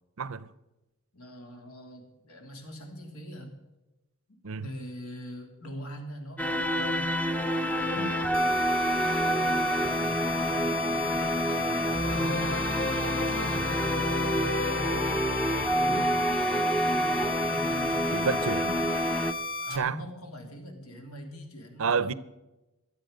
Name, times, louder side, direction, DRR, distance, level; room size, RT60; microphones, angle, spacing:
voice 1, 0.2-0.5 4.4-4.7 8.0-8.2 15.9-16.2 18.1-19.1 19.8-20.0 21.8-22.1, right 5 dB, 65° right, 0.6 m, -30 dB
voice 2, 1.1-3.5 4.3-7.1 7.4-8.3 9.0-15.0 15.8-18.6 19.6-22.2, equal, 75° left, 3.0 m, -44 dB
sound 1, 6.4-19.3, equal, 5° left, 0.6 m, -28 dB
sound 2, 8.3-19.8, left 2 dB, 40° left, 1.4 m, -34 dB
23.5 x 8.6 x 5.2 m
head